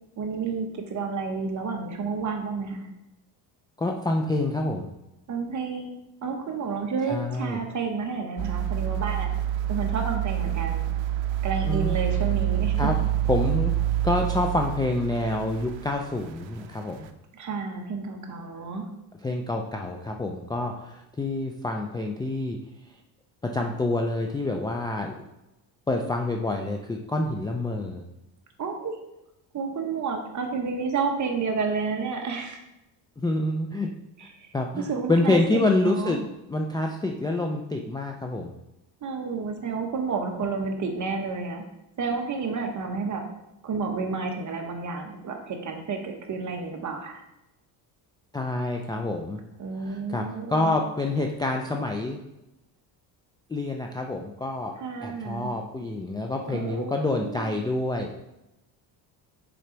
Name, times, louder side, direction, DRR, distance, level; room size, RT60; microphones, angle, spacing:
voice 1, 0.2-2.9 5.3-9.3 9.7-10.9 11.4-12.9 17.3-18.8 28.6-29.0 29.5-32.6 34.4-34.5 34.8-36.2 39.0-41.6 42.0-43.2 43.6-47.2 49.6-50.8 54.8-55.5 56.5-57.6, right 4 dB, 40° right, 3 dB, 1.1 m, -30 dB
voice 2, 3.8-4.9 7.1-7.6 11.7-12.0 12.8-13.7 14.0-17.1 19.2-22.6 23.4-25.2 25.9-28.0 33.2-33.9 34.5-36.2 36.5-38.5 48.3-49.4 49.8-52.2 53.5-54.8 55.0-58.1, left 2 dB, 10° left, 2 dB, 0.3 m, -27 dB
sound 1, 8.4-16.6 17.0-17.1, right 12 dB, 80° right, 0.7 m, -27 dB
6.7 x 3.8 x 4.5 m, 0.92 s
cardioid pair, 120°, 46 cm